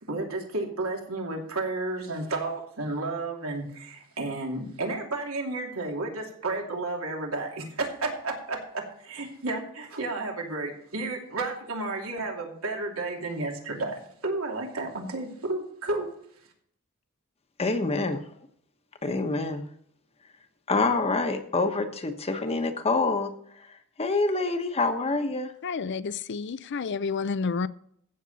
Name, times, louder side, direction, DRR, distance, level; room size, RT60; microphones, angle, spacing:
voice 1, 0.1-16.1, right 2 dB, 90° right, 2.8 m, -32 dB
voice 2, 17.6-18.2 19.0-19.6 20.7-23.3 24.0-25.5, left 3 dB, 30° left, 1.1 m, -26 dB
voice 3, 25.6-27.7, left 5 dB, 55° left, 0.5 m, -30 dB
15.0 x 7.0 x 4.1 m
head